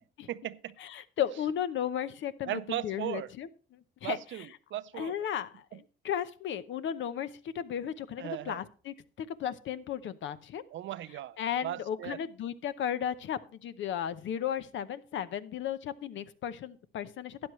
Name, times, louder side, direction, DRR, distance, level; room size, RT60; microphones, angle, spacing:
voice 1, 0.3-0.8 2.4-3.3 4.0-5.3 5.7-5.8 8.2-8.6 10.7-12.2, right 13 dB, 70° right, 0.6 m, -38 dB
voice 2, 0.8-4.2 4.9-10.6 11.4-17.4, left 9 dB, 70° left, 0.8 m, -35 dB
12.5 x 9.6 x 3.1 m
cardioid pair, 90°, 20 cm